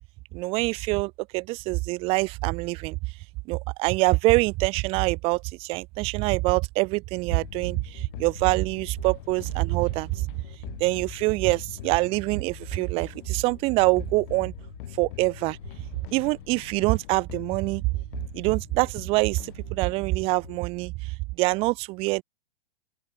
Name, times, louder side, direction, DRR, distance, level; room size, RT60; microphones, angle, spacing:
voice 1, 0.3-3.0 3.5-10.3 10.8-14.5 15.0-15.6 16.1-17.9 18.3-22.2, right 24 dB, 20° right, 0.3 m, -25 dB
sound 1, 7.3-20.6, left 17 dB, 50° left, 3.8 m, -43 dB
open air
hypercardioid pair, 115°, 32 cm